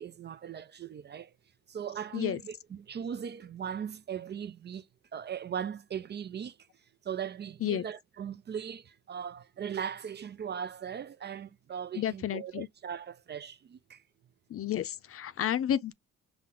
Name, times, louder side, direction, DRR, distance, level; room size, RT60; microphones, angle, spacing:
voice 1, 0.0-1.3 1.7-4.9 5.1-6.6 7.0-14.0, right 8 dB, 35° right, 0.4 m, -39 dB
voice 2, 11.9-12.7 14.5-15.9, left 10 dB, 50° left, 0.5 m, -31 dB
5.8 x 2.2 x 3.8 m
cardioid pair, 90°, 30 cm